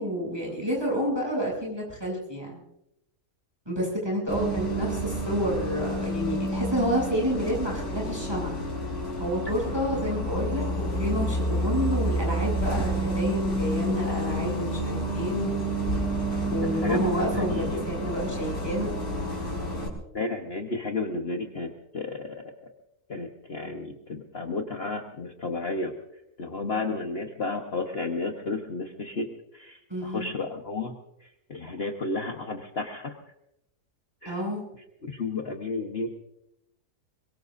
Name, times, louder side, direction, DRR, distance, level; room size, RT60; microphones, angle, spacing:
voice 1, 0.0-2.6 3.6-8.6 9.2-10.6 11.0-15.5 16.5-18.9 29.9-30.3 34.2-34.6, equal, 15° right, -2 dB, 8.2 m, -29 dB
Bus, 4.3-19.9, equal, 75° left, 5.2 m, -29 dB
voice 2, 16.5-17.8 20.1-22.4 23.1-25.9 26.4-29.3 29.5-30.9 31.2-33.1 34.2-34.4 35.0-36.1, left 3 dB, 40° left, 2 dB, 1.4 m, -32 dB
23.5 x 23.0 x 2.7 m, 0.83 s
omnidirectional pair, 1.6 m